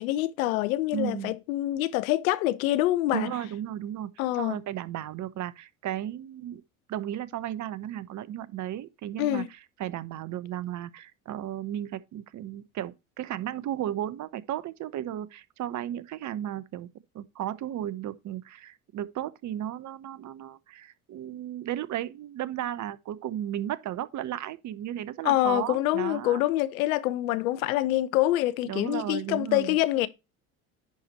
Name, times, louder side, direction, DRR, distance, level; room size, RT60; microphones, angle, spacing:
voice 1, 0.0-3.3 4.2-4.6 9.2-9.5 25.2-30.1, left 15 dB, 75° left, 0.8 m, -26 dB
voice 2, 0.9-1.4 3.1-4.1 4.4-6.6 6.9-16.9 17.1-26.4 28.6-29.8, right 11 dB, 45° right, 0.8 m, -34 dB
10.5 x 4.3 x 4.3 m
hypercardioid pair, 70°, 42 cm